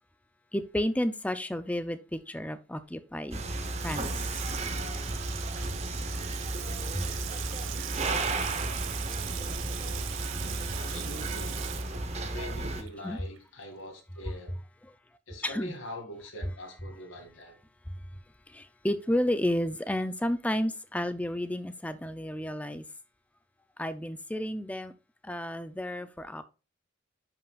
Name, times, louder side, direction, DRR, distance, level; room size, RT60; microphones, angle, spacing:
voice 1, 0.5-3.4 3.8-4.1 6.9-7.0 13.0-13.2 15.4-15.7 18.5-22.8 23.8-24.9 25.2-26.4, left 1 dB, 5° left, 0.4 m, -31 dB
sound 1, 3.3-12.8, right 2 dB, 30° right, 0.8 m, -33 dB
Water tap faucet / Sink (filling or washing), 3.3-13.1 13.4-13.5, right 12 dB, 60° right, 0.5 m, -41 dB
voice 2, 10.8-11.6 12.1-14.5 15.3-17.5, left 1 dB, 65° left, 2.2 m, -43 dB
10.5 x 5.6 x 2.4 m
head